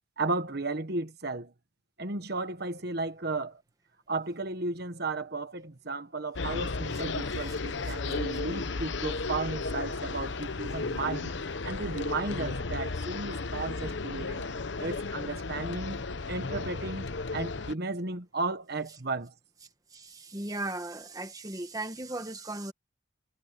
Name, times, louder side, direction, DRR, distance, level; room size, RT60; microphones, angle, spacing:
voice 1, 0.2-1.5 2.0-3.6 4.1-11.3 11.6-14.5 14.8-17.1 17.3-19.3, right 3 dB, 50° right, 1.2 m, -34 dB
sound 1, 6.4-17.7, left 3 dB, 60° left, 0.9 m, -34 dB
voice 2, 19.9-22.7, right 2 dB, 20° right, 1.5 m, -37 dB
head